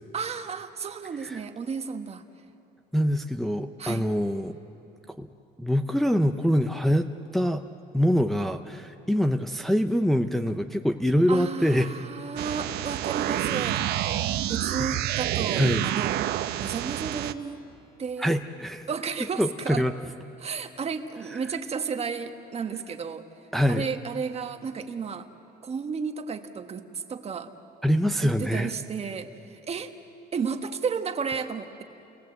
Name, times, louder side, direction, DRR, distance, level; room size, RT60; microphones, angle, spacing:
voice 1, 0.1-2.2 3.8-4.0 11.3-13.9 14.5-16.2 16.6-17.6 18.0-18.3 18.9-19.8 20.4-23.3 23.7-25.3 25.6-27.5 28.2-29.9 30.3-31.8, right 6 dB, 40° right, 7 dB, 1.4 m, -33 dB
voice 2, 2.9-4.6 5.2-5.3 5.6-7.6 7.9-11.9 14.8-15.0 15.6-15.8 18.2-18.9 19.4-19.9 23.5-23.8 27.8-28.7, equal, ahead, 5 dB, 0.7 m, -24 dB
sound 1, 12.4-17.3, right 13 dB, 75° right, 0.9 m, -28 dB
29.5 x 19.0 x 7.8 m, 2.8 s
cardioid pair, 110°, 17 cm